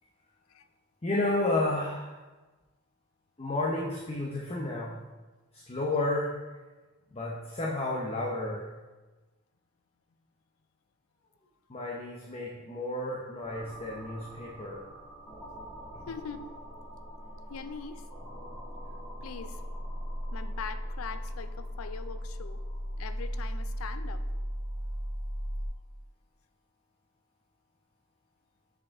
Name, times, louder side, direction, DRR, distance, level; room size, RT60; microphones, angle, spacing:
voice 1, 1.0-2.2 3.4-5.0 5.5-6.4 7.1-8.7 11.7-14.8 15.9-16.1, left 2 dB, 30° left, -3 dB, 0.7 m, -31 dB
sound 1, 13.4-25.7, equal, 10° left, 1.8 m, -38 dB
voice 2, 16.1-16.5 17.5-18.1 19.2-19.6 20.3-22.6 23.0-24.2, left 6 dB, 90° left, 11 dB, 0.4 m, -42 dB
6.6 x 5.2 x 3.6 m, 1.2 s
head